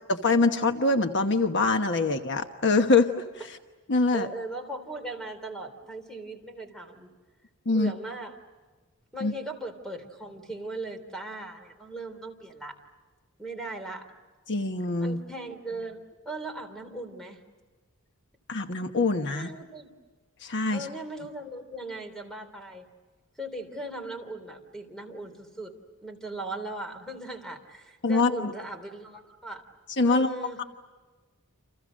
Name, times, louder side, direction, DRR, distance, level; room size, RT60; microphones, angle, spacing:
voice 1, 0.2-3.2 3.9-4.3 7.7-7.9 9.2-9.3 14.5-15.2 18.5-19.5 20.4-20.9 28.0-28.5 30.0-30.3 30.6-30.7, left 3 dB, 55° left, 6 dB, 1.2 m, -24 dB
voice 2, 4.1-7.1 7.7-8.4 9.1-12.8 13.4-14.1 15.0-17.4 19.3-19.9 20.7-22.9 23.4-25.7 26.0-29.6 30.0-30.6, right 2 dB, 5° left, 6 dB, 3.5 m, -38 dB
29.5 x 28.0 x 6.4 m, 1.3 s
head